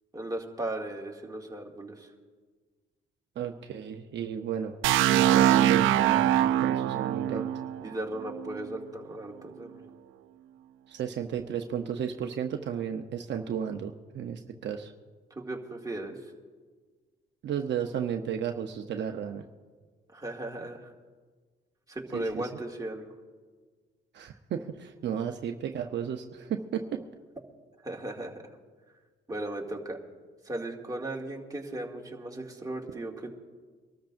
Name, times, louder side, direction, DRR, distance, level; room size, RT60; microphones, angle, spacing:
voice 1, 0.1-2.1 7.3-7.5 7.8-9.9 15.4-16.2 20.1-20.9 21.9-23.1 27.8-28.4 29.3-30.0 30.4-33.3, right 1 dB, 20° right, -1 dB, 2.4 m, -36 dB
voice 2, 3.4-4.8 5.1-7.5 10.9-14.9 17.4-19.4 22.1-22.5 24.1-27.0, right 8 dB, 65° right, 4 dB, 0.9 m, -33 dB
sound 1, 4.8-8.7, right 12 dB, 85° right, 0.4 m, -23 dB
25.0 x 13.0 x 2.6 m, 1.5 s
cardioid pair, 90°, 20 cm